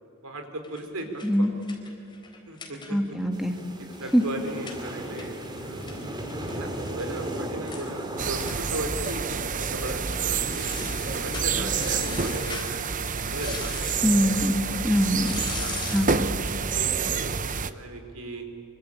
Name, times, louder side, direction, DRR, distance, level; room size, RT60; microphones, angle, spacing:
voice 1, 0.2-1.5 2.5-2.8 3.8-6.0 6.5-10.7 11.1-13.9 15.1-16.3 16.7-18.5, right 1 dB, 80° right, 5 dB, 4.4 m, -37 dB
sound 1, 0.6-3.3 3.6-3.7 3.9-7.1 7.4-7.5 7.7-7.9 8.4-8.6 9.0-9.4 9.7-10.0 10.4-12.7 13.3-14.2 15.1-16.3, left 5 dB, 20° left, 3.9 m, -40 dB
voice 2, 2.9-3.5 4.1-4.2 14.0-15.3 15.9-16.3, equal, ahead, 3 dB, 2.0 m, -23 dB
sound 2, 3.3-12.4, right 1 dB, 20° right, 2.6 m, -37 dB
sound 3, 8.2-17.7, right 5 dB, 35° right, 0.9 m, -28 dB
26.0 x 24.5 x 8.8 m, 2.8 s
head